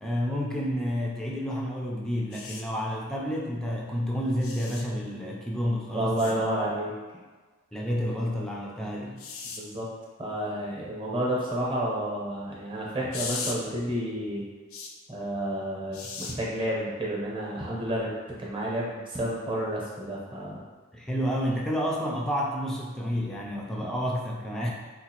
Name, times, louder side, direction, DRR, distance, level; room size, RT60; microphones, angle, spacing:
voice 1, 0.0-6.4 7.7-9.2 20.9-24.7, equal, 5° left, -3 dB, 0.3 m, -30 dB
sound 1, 2.3-2.6 4.4-4.8 6.2-6.3 9.2-9.6 13.1-13.6 14.7-14.9 15.9-16.3 17.8-18.0, left 5 dB, 70° left, 0.4 m, -37 dB
voice 2, 5.9-6.9 9.4-9.9 10.2-14.4 15.1-18.1 18.4-20.6, right 1 dB, 25° right, -5 dB, 0.8 m, -30 dB
3.8 x 2.4 x 2.9 m, 1.3 s
head